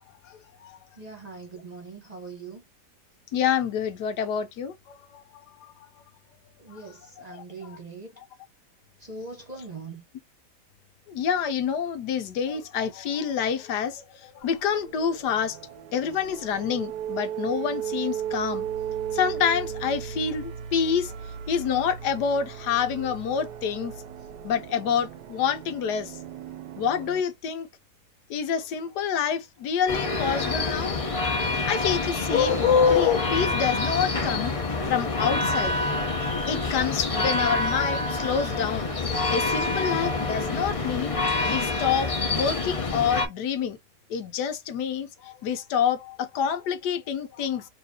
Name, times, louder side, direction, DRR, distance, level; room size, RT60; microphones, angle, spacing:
voice 1, 0.3-0.8 3.3-4.7 5.1-5.2 7.3-7.8 11.1-15.6 15.9-18.7 19.1-21.1 21.5-23.9 24.4-26.1 26.8-27.7 28.3-31.0 31.7-34.6 34.9-35.7 36.5-38.9 39.3-41.1 41.4-43.8 44.1-47.6, left 7 dB, 75° left, 1.3 m, -27 dB
voice 2, 1.0-2.6 6.6-8.1 9.0-10.0, right 3 dB, 25° right, 1.2 m, -41 dB
sound 1, 14.4-27.2, right 9 dB, 80° right, 1.2 m, -36 dB
sound 2, 29.9-43.3, left 3 dB, 30° left, 0.7 m, -26 dB
4.4 x 2.9 x 2.8 m
omnidirectional pair, 1.8 m